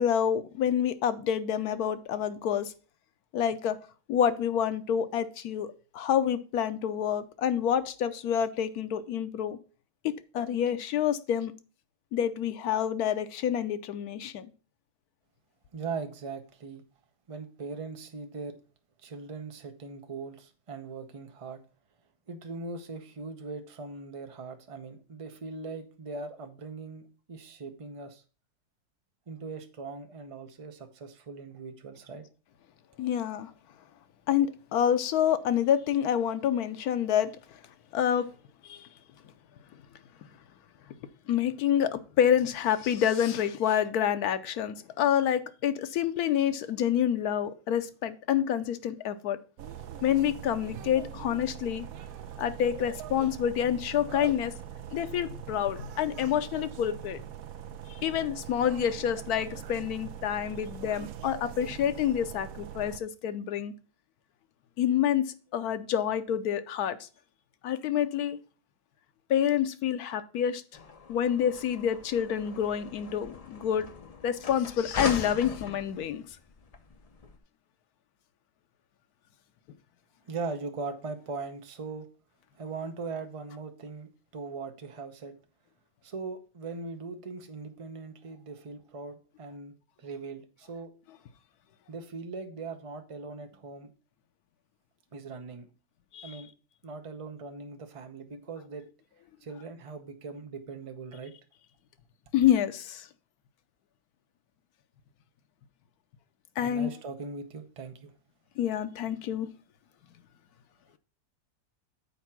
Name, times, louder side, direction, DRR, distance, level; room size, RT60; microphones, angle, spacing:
voice 1, 0.0-2.7 3.3-3.8 4.1-9.6 10.3-11.5 12.1-14.5 33.0-33.5 34.3-37.3 37.9-38.3 38.6-38.9 41.3-49.4 50.0-51.8 52.4-54.5 54.9-57.2 57.9-63.7 64.8-65.2 65.5-67.1 67.6-68.4 69.3-70.6 71.1-73.9 74.2-76.2 96.1-96.4 102.3-103.1 106.6-106.9 108.6-109.5, left 9 dB, 85° left, 1.2 m, -28 dB
voice 2, 15.7-16.8 17.3-18.6 19.0-21.6 22.3-28.2 29.3-32.2 80.3-82.1 82.6-85.3 86.0-90.9 91.9-93.9 95.1-95.7 96.2-96.5 96.8-98.9 99.4-101.3 106.6-108.1, right 4 dB, 30° right, 0.7 m, -40 dB
sound 1, 49.6-63.0, right 9 dB, 75° right, 1.1 m, -42 dB
sound 2, 70.7-77.4, left 4 dB, 45° left, 0.5 m, -40 dB
7.1 x 4.4 x 5.9 m
omnidirectional pair, 1.6 m